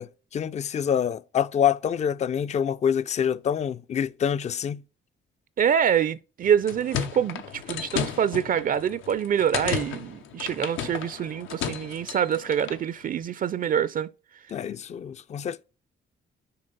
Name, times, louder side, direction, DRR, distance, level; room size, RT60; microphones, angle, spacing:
voice 1, 0.0-4.8 14.5-15.6, left 8 dB, 35° left, 0.4 m, -26 dB
voice 2, 5.6-14.1, right 8 dB, 45° right, 0.4 m, -25 dB
sound 1, 6.4-12.8, left 8 dB, 85° left, 0.8 m, -34 dB
6.7 x 4.0 x 3.9 m
cardioid pair, 90°, 20 cm